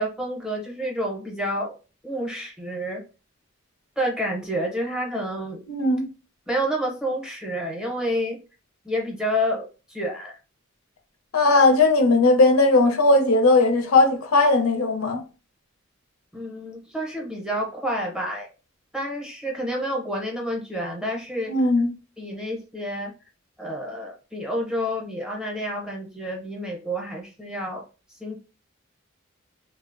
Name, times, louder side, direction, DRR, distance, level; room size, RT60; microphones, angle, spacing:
voice 1, 0.0-1.7 2.0-3.0 4.0-5.6 6.5-8.4 8.8-10.4 16.3-18.5 18.9-21.5 22.2-23.1 23.6-27.8 28.2-28.4, equal, 5° right, 0.6 m, -29 dB
voice 2, 5.7-6.1 11.3-15.2 21.5-21.9, left 2 dB, 90° left, 0.5 m, -18 dB
2.7 x 2.0 x 2.4 m
head